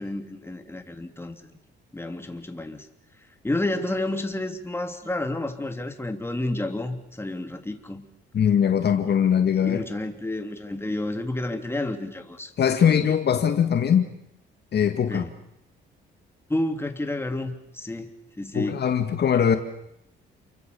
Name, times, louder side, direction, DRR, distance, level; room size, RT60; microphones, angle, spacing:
voice 1, 0.0-1.4 1.9-2.9 3.4-8.0 9.0-9.1 9.6-12.5 12.8-13.0 15.1-15.3 16.5-18.8, left 1 dB, 10° left, 5 dB, 3.3 m, -30 dB
voice 2, 8.3-9.8 12.6-14.1 14.7-15.3 18.5-19.6, left 8 dB, 55° left, 7 dB, 2.1 m, -21 dB
29.5 x 24.0 x 7.1 m, 0.79 s
cardioid pair, 90°, 20 cm